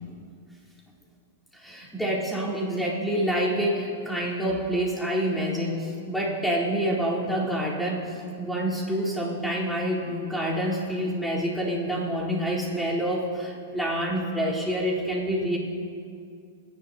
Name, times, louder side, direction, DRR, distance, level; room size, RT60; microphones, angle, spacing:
voice 1, 1.5-15.6, equal, ahead, -6 dB, 4.0 m, -27 dB
28.5 x 11.5 x 2.9 m, 2.4 s
hypercardioid pair, 115°, 0 cm